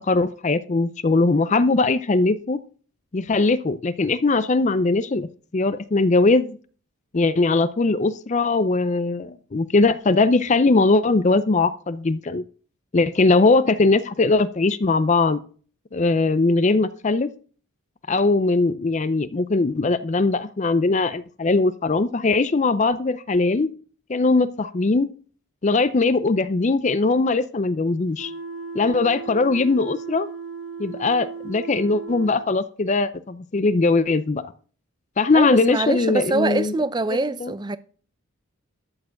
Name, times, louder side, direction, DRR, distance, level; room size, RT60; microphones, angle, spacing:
voice 1, 0.1-2.6 3.1-5.3 5.5-6.6 7.1-12.4 12.9-15.4 15.9-17.3 18.1-23.7 24.1-25.1 25.6-28.3 28.7-30.3 30.8-34.4 35.2-36.7 37.4-37.5, left 3 dB, 35° left, 0.4 m, -20 dB
sound 1, 28.2-32.4, right 5 dB, 75° right, 2.2 m, -36 dB
voice 2, 35.3-37.8, right 2 dB, 20° right, 0.5 m, -24 dB
13.0 x 4.6 x 7.6 m
head